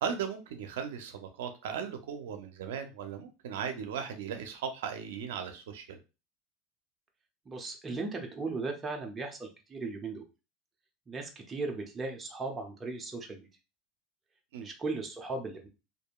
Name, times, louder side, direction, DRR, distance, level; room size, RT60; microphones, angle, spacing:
voice 1, 0.0-6.0 14.5-14.7, right 7 dB, 90° right, 7 dB, 0.5 m, -37 dB
voice 2, 7.5-10.2 11.1-13.5 14.6-15.7, right 3 dB, 20° right, 2 dB, 0.6 m, -37 dB
2.7 x 2.5 x 2.2 m, 0.29 s
supercardioid pair, 135°, 0 cm